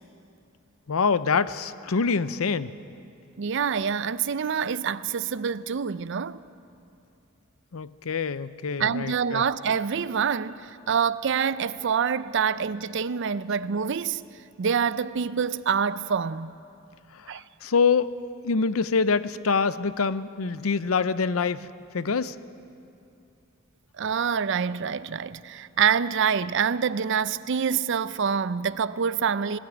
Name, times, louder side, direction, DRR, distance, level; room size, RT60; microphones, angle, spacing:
voice 1, 0.9-2.7 7.7-9.4 17.1-18.1 18.4-21.7 21.9-22.4, left 5 dB, 80° left, 0.6 m, -25 dB
voice 2, 3.4-6.4 8.8-14.3 14.6-16.5 17.3-17.4 24.0-29.6, right 7 dB, 60° right, 0.5 m, -26 dB
20.0 x 15.0 x 9.0 m
head